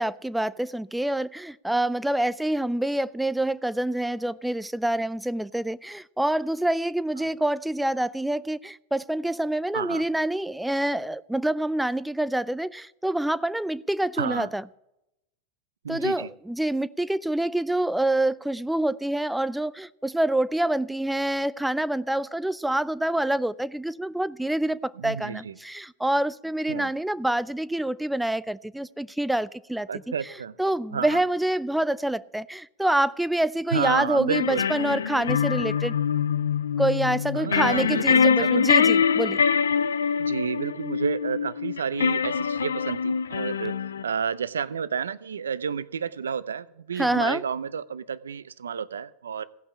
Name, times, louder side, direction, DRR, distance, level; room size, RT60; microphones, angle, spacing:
voice 1, 0.0-14.6 15.9-29.9 30.6-35.9 36.8-39.4 47.0-47.4, right 1 dB, 5° right, 0.4 m, -26 dB
voice 2, 9.7-10.0 14.2-14.5 15.8-16.3 25.0-25.5 26.7-26.9 29.9-30.5 30.9-31.2 33.7-34.7 37.3-38.6 40.2-49.4, right 6 dB, 90° right, 0.5 m, -30 dB
sound 1, 34.3-44.0, left 6 dB, 85° left, 0.4 m, -24 dB
16.0 x 5.7 x 8.6 m
hypercardioid pair, 100°, 0 cm